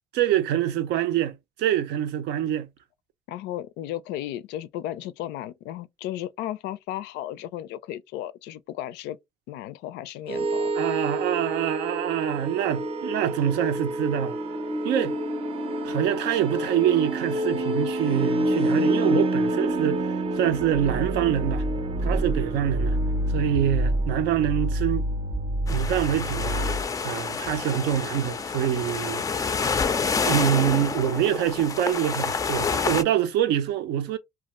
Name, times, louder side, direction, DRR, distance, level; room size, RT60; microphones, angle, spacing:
voice 1, 0.1-2.7 10.7-14.4 14.8-15.2 15.8-21.6 22.0-23.0 23.3-25.0 25.7-26.8 27.0-29.9 30.3-34.2, right 10 dB, 80° right, 0.5 m, -25 dB
voice 2, 3.3-9.2 9.5-10.7, left 13 dB, 85° left, 0.4 m, -34 dB
sound 1, 10.3-26.8, right 1 dB, 35° right, 0.5 m, -27 dB
sound 2, 25.7-33.0, left 5 dB, 20° left, 0.3 m, -28 dB
2.5 x 2.3 x 3.0 m
cardioid pair, 110°, 17 cm